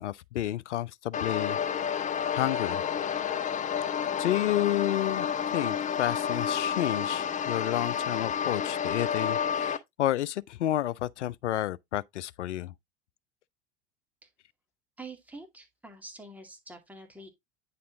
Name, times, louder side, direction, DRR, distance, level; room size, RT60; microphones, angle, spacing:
voice 1, 0.0-1.6 2.3-2.8 4.2-12.7, left 13 dB, 80° left, 0.5 m, -30 dB
sound 1, 1.1-9.8, left 8 dB, 20° left, 0.7 m, -30 dB
voice 2, 15.0-17.3, right 2 dB, 5° right, 2.2 m, -46 dB
9.4 x 4.2 x 3.8 m
hypercardioid pair, 85°, 35 cm